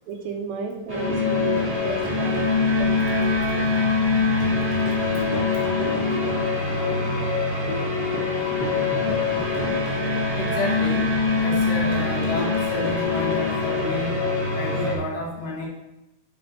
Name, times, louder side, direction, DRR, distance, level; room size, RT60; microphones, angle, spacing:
voice 1, 0.1-2.5 2.8-3.7, right 5 dB, 80° right, 2 dB, 2.3 m, -33 dB
sound 1, 0.9-14.9, left 3 dB, 10° right, 1.0 m, -23 dB
voice 2, 10.4-11.1 11.4-14.1 14.5-15.7, left 2 dB, 75° left, -3 dB, 3.6 m, -30 dB
11.0 x 5.8 x 2.8 m, 0.94 s
omnidirectional pair, 4.9 m